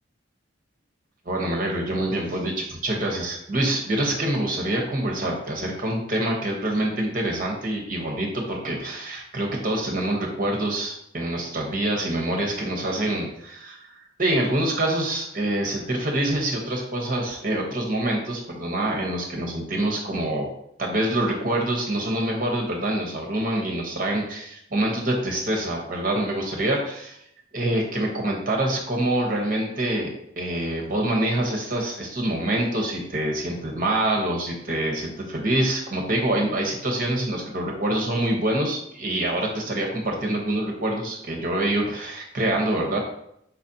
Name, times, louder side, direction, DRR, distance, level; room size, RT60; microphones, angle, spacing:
voice 1, 1.2-20.5 20.8-27.2 27.5-30.1 30.4-43.0, right 1 dB, 45° right, 0 dB, 1.0 m, -26 dB
4.5 x 4.0 x 2.8 m, 0.74 s
head